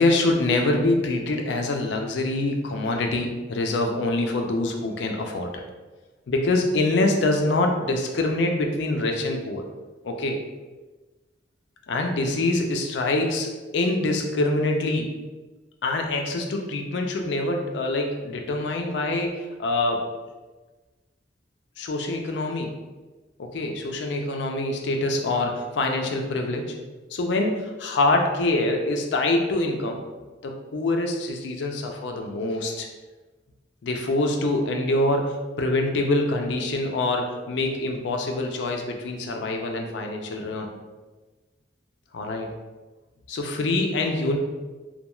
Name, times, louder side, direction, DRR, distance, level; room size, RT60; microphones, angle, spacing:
voice 1, 0.0-5.6 6.3-9.6 10.0-10.4 11.9-15.1 15.8-19.3 19.6-20.1 21.8-22.8 23.4-26.8 27.1-30.0 30.4-32.9 33.8-40.7 42.1-42.5 43.3-44.4, left 2 dB, 80° left, 3 dB, 0.4 m, -25 dB
2.9 x 2.3 x 2.2 m, 1.2 s
head